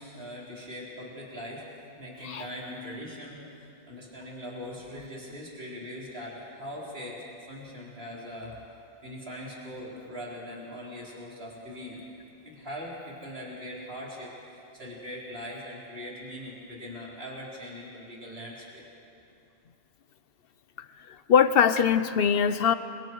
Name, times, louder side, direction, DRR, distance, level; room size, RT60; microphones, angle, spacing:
voice 1, 0.0-1.6 2.0-7.2 7.5-8.6 9.0-12.0 12.4-18.8, equal, 65° right, -5 dB, 4.7 m, -41 dB
voice 2, 20.8-22.7, left 7 dB, 60° left, 12 dB, 1.0 m, -22 dB
29.5 x 25.0 x 4.7 m, 2.6 s
omnidirectional pair, 1.1 m